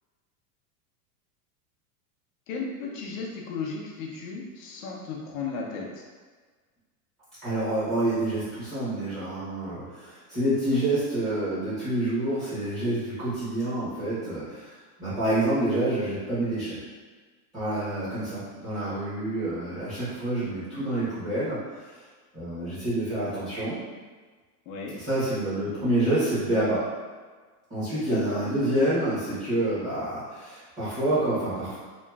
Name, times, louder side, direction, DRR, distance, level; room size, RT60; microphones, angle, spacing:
voice 1, 2.5-5.9 24.7-24.9 28.0-28.4, left 4 dB, 60° left, -1 dB, 0.6 m, -35 dB
voice 2, 7.4-14.7 15.0-16.8 17.5-21.6 22.3-23.8 25.0-26.8 27.7-31.8, right 1 dB, 15° right, -16 dB, 1.0 m, -27 dB
3.0 x 2.4 x 2.3 m, 1.4 s
supercardioid pair, 165°, 48 cm